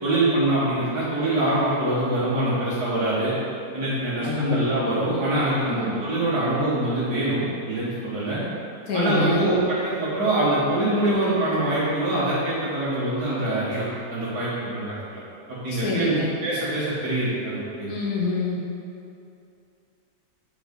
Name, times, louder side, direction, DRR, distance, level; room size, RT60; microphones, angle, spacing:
voice 1, 0.0-3.3 3.7-8.4 8.9-13.8 14.1-14.9 15.1-15.2 15.5-16.1 16.4-17.9, right 1 dB, 85° right, -10 dB, 2.3 m, -24 dB
voice 2, 4.2-4.7 5.7-5.9 8.9-9.5 15.7-16.3 17.9-18.6, left 2 dB, 65° left, -4 dB, 2.1 m, -26 dB
9.0 x 5.9 x 5.4 m, 2.6 s
omnidirectional pair, 1.6 m